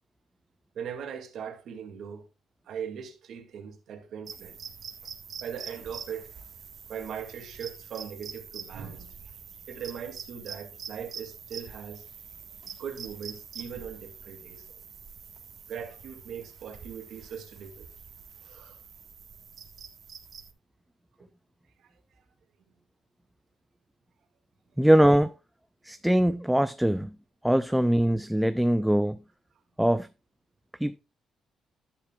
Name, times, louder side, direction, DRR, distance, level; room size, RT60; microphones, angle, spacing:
voice 1, 0.7-2.3 2.7-4.6 5.4-6.3 6.9-9.3 9.7-12.0 12.8-14.7 15.7-17.9 18.4-18.8 21.8-21.9, right 7 dB, 70° right, 2.3 m, -40 dB
sound 1, 4.3-20.5, right 7 dB, 55° right, 1.6 m, -45 dB
voice 2, 24.8-25.3 25.8-27.1 27.4-29.2 29.8-30.1 30.8-31.0, right 1 dB, 5° right, 0.5 m, -22 dB
11.5 x 10.0 x 2.4 m
cardioid pair, 90°, 0 cm